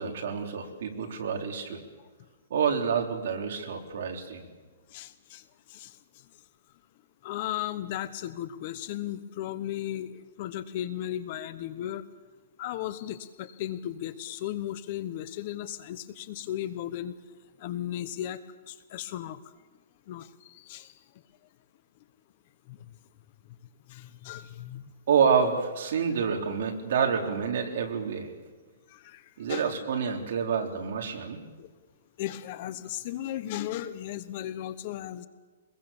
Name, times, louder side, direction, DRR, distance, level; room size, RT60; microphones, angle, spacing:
voice 1, 0.0-1.8 2.5-4.5 25.1-28.3 29.4-31.4, right 6 dB, 55° right, 3 dB, 3.8 m, -28 dB
voice 2, 4.9-6.0 7.2-12.1 12.6-17.2 17.6-19.4 20.1-20.9 22.7-22.9 23.9-24.9 28.9-29.7 31.6-31.7 32.2-35.3, left 12 dB, 35° left, 13 dB, 1.0 m, -36 dB
25.0 x 21.5 x 7.2 m, 1.3 s
hypercardioid pair, 170°, 0 cm